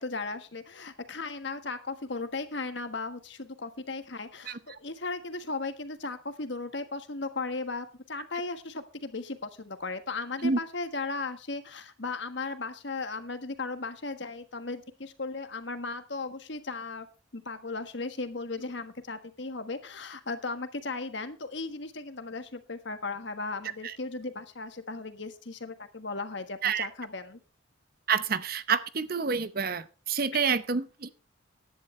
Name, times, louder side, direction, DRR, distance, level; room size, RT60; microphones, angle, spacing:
voice 1, 0.0-17.1 17.3-27.4 30.3-30.4, left 3 dB, 60° left, 1.5 m, -36 dB
voice 2, 28.1-31.1, right 5 dB, 45° right, 0.8 m, -28 dB
15.5 x 11.0 x 3.2 m
head